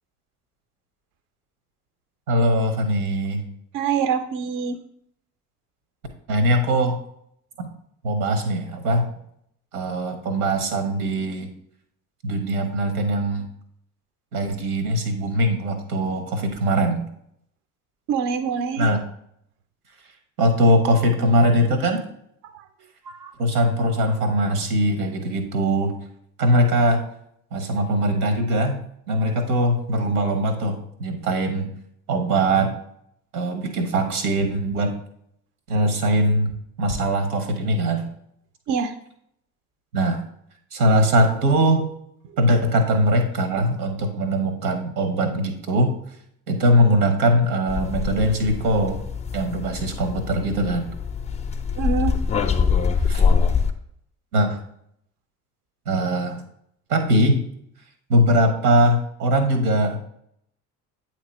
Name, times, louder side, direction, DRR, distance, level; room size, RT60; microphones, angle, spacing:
voice 1, 2.3-3.4 6.3-7.0 8.0-9.0 9.7-11.5 12.2-13.5 14.3-17.0 18.8-19.0 20.4-22.0 23.4-25.9 26.4-27.0 27.5-31.7 32.1-32.7 33.3-34.9 35.7-38.1 39.9-40.2 40.7-41.9 42.4-45.9 46.5-49.0 49.3-50.9 52.9-53.2 54.3-54.6 55.9-56.4 56.9-57.4 58.1-60.0, equal, 75° right, 7 dB, 1.1 m, -21 dB
voice 2, 3.7-4.8 18.1-18.9 22.4-22.7 23.0-23.3 38.7-38.9 51.8-52.2, right 6 dB, 45° right, 9 dB, 0.6 m, -25 dB
sound 1, 47.7-53.7, left 6 dB, 15° left, 0.5 m, -24 dB
8.4 x 3.0 x 4.2 m, 0.70 s
figure-of-eight pair, 55°, 45 cm